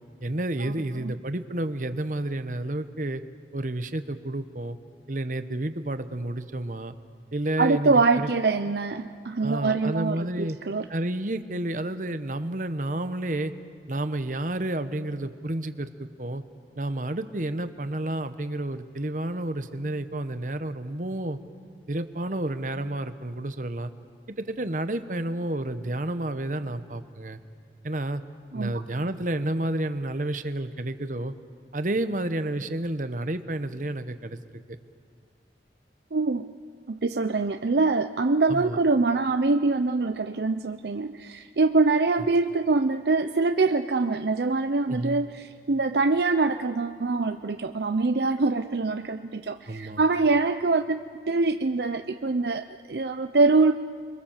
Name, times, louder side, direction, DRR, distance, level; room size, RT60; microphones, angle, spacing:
voice 1, 0.2-3.2 3.5-4.8 5.1-6.9 7.3-8.3 9.4-10.6 10.9-13.5 13.9-16.4 16.8-21.4 21.9-23.9 24.4-27.4 27.8-28.2 28.5-31.3 31.7-34.4 38.5-38.8 44.9-45.2 49.7-50.0, right 1 dB, 45° right, 10 dB, 1.0 m, -30 dB
voice 2, 7.6-10.9 28.5-28.8 36.1-36.5 36.9-53.7, right 3 dB, 65° right, 8 dB, 0.6 m, -24 dB
30.0 x 23.0 x 7.4 m, 2.1 s
head